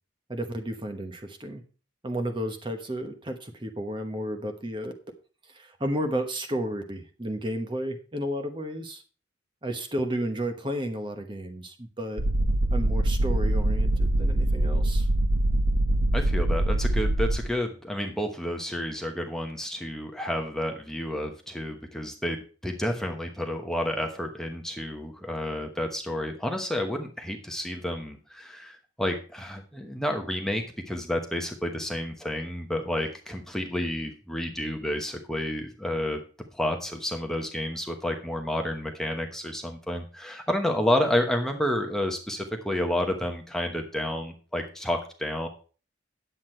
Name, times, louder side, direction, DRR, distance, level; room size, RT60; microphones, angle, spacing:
voice 1, 0.3-1.6 2.0-4.9 5.5-9.0 9.6-12.2 12.7-15.1, equal, 25° right, 6 dB, 1.1 m, -32 dB
sound 1, 12.2-17.5, right 1 dB, 60° right, 1.1 m, -24 dB
voice 2, 16.1-36.2 36.5-45.5, left 1 dB, 5° left, 3 dB, 1.0 m, -30 dB
9.7 x 8.0 x 4.4 m, 0.37 s
head